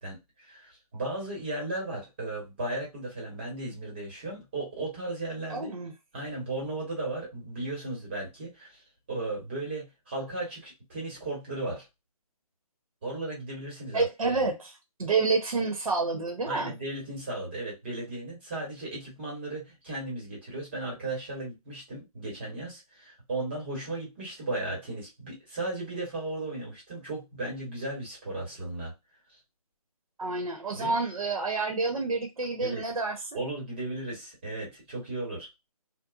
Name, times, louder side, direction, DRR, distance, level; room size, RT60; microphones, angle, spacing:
voice 1, 0.0-5.7 6.1-8.8 9.1-11.9 13.0-14.3 16.5-28.9 30.7-31.0 32.6-32.8 33.3-35.5, right 2 dB, 20° right, 0.9 m, -36 dB
voice 2, 5.5-5.9 13.9-16.7 30.2-33.4, right 3 dB, 75° right, 0.8 m, -29 dB
2.9 x 2.1 x 2.3 m
hypercardioid pair, 170°, 19 cm